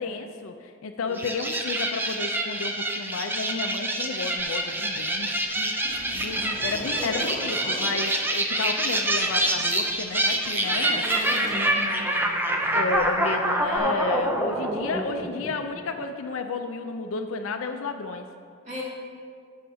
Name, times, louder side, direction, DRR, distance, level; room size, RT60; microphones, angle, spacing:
voice 1, 0.0-11.8 12.7-18.3, left 4 dB, 75° left, 6 dB, 0.4 m, -32 dB
sound 1, 1.2-15.8, right 1 dB, 10° right, 0.5 m, -26 dB
Zipper (clothing), 4.4-4.5 5.1-8.0 9.0-11.9 12.9-13.1 13.7-13.8, equal, 20° left, 1.0 m, -40 dB
voice 2, 5.8-6.3 11.3-12.2 12.5-12.8 18.6-18.8, left 1 dB, 35° right, -6 dB, 2.4 m, -38 dB
14.5 x 6.4 x 2.7 m, 2.2 s
head